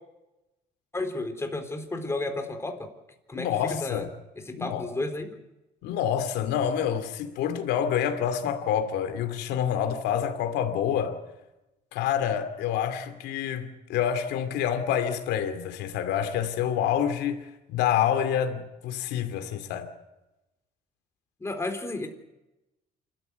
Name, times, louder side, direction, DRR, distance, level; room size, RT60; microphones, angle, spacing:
voice 1, 0.9-2.9 3.3-4.1 4.4-5.3 21.4-22.1, left 2 dB, 15° left, 4.0 m, -32 dB
voice 2, 3.3-4.1 4.6-4.8 5.8-11.2 11.9-17.4 17.7-19.9, left 9 dB, 85° left, 2.5 m, -27 dB
28.0 x 13.5 x 9.5 m
cardioid pair, 110°, 17 cm